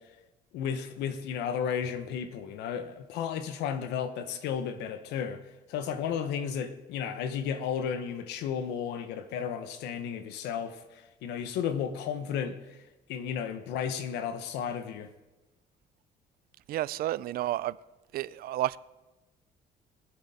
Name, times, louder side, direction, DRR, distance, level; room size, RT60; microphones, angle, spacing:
voice 1, 0.5-5.4 5.7-12.6 13.1-15.1, left 7 dB, 85° left, 1.1 m, -33 dB
voice 2, 16.7-17.8 18.1-18.8, right 14 dB, 60° right, 0.4 m, -31 dB
21.0 x 7.9 x 4.2 m
cardioid pair, 110°, 17 cm